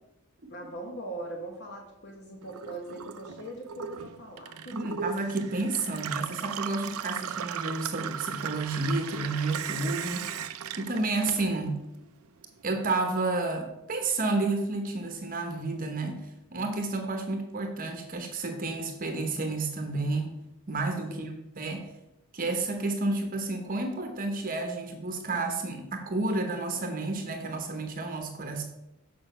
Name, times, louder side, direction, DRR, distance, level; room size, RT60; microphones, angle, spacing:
voice 1, 0.5-5.1 21.1-21.4, right 1 dB, 50° left, 2 dB, 1.1 m, -41 dB
Gurgling / Water tap faucet / Sink (filling or washing), 2.4-11.9 12.2-13.1, right 8 dB, 80° right, 0.5 m, -37 dB
voice 2, 4.7-10.3 10.8-11.8 12.6-20.4 20.7-21.9 22.3-28.6, right 2 dB, 40° right, 5 dB, 0.9 m, -31 dB
7.2 x 5.1 x 5.5 m, 0.88 s
head